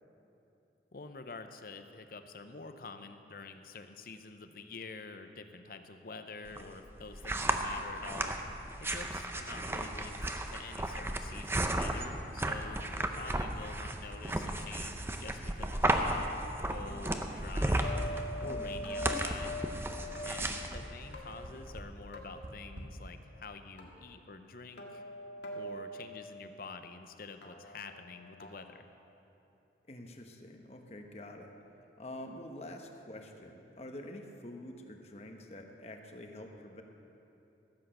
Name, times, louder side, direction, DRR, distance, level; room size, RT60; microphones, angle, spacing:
voice 1, 0.9-8.4 8.8-16.3 16.6-18.0 18.4-19.6 20.2-25.0 25.5-28.9, left 4 dB, 50° left, 8 dB, 0.7 m, -47 dB
sound 1, 6.5-21.8, right 1 dB, 15° right, 0.6 m, -34 dB
sound 2, 13.5-13.9 14.5-14.9 15.4-15.5 15.8-15.9 16.4-16.5 16.8-16.9 17.4-17.8 18.4-18.8 19.4-19.9 20.4-20.8 21.4-21.5 21.8-21.9 22.4-22.8, right 1 dB, 75° right, 1.4 m, -45 dB
sound 3, 17.8-20.3 21.1-21.9 22.1-22.5 23.8-23.9 24.8-26.1 27.4-28.5, left 1 dB, 75° left, 1.7 m, -42 dB
voice 2, 29.9-31.5 32.0-36.8, left 1 dB, 35° left, 4 dB, 1.0 m, -47 dB
15.5 x 8.3 x 6.6 m, 2.9 s
head